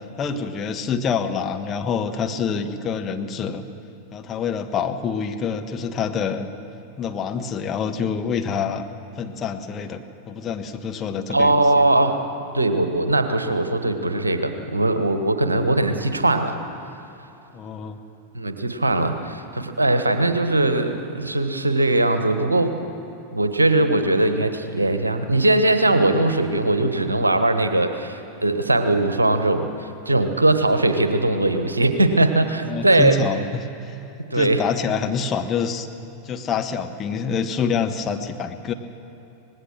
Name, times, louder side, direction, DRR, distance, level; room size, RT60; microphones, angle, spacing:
voice 1, 0.2-3.6 4.1-6.5 7.0-8.8 9.2-11.8 17.5-18.0 32.7-34.0 34.3-35.9 36.2-38.7, left 6 dB, 25° left, 5 dB, 1.4 m, -26 dB
voice 2, 11.3-12.2 12.5-16.6 18.3-22.8 23.3-33.2 34.3-34.6, right 2 dB, 80° right, 8 dB, 1.4 m, -20 dB
25.5 x 19.5 x 6.4 m, 2.9 s
figure-of-eight pair, 90°, 0 cm